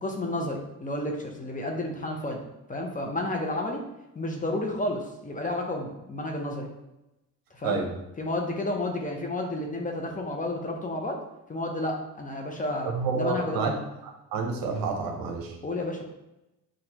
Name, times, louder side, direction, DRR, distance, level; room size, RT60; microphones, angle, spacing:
voice 1, 0.0-2.4 2.7-3.8 4.1-6.7 7.5-7.8 8.2-11.2 11.5-13.8 15.6-16.1, left 1 dB, 25° left, 2 dB, 0.8 m, -31 dB
voice 2, 12.9-13.7 14.0-15.6, right 4 dB, 70° right, 2 dB, 0.9 m, -29 dB
6.0 x 2.5 x 2.9 m, 0.93 s
cardioid pair, 95°, 35 cm